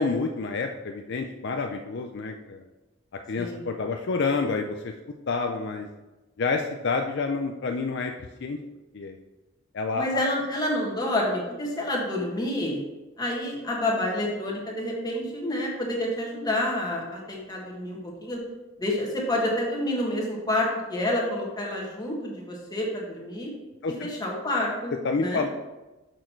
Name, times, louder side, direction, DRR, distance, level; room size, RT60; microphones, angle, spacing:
voice 1, 0.0-2.6 3.3-4.9 5.3-5.9 6.4-8.6 8.9-9.2 9.7-10.2 23.8-24.1 25.0-25.5, left 4 dB, 55° left, 4 dB, 0.5 m, -28 dB
voice 2, 3.4-3.7 9.9-12.8 13.2-18.4 18.8-23.5 24.0-24.9 25.2-25.4, left 1 dB, 20° left, -2 dB, 1.7 m, -28 dB
6.4 x 6.4 x 4.5 m, 1.1 s
head